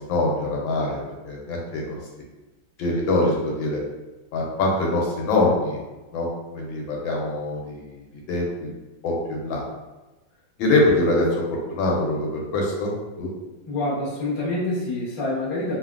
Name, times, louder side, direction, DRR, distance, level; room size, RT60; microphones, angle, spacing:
voice 1, 0.1-2.0 2.8-3.8 4.3-5.8 6.1-6.3 6.5-7.9 8.1-8.7 9.0-9.6 10.6-11.3 11.7-12.9 13.2-13.3, left 2 dB, 90° left, -2 dB, 1.5 m, -23 dB
voice 2, 13.7-15.8, left 2 dB, 60° left, -8 dB, 0.3 m, -26 dB
3.4 x 2.2 x 2.4 m, 1.1 s
omnidirectional pair, 2.1 m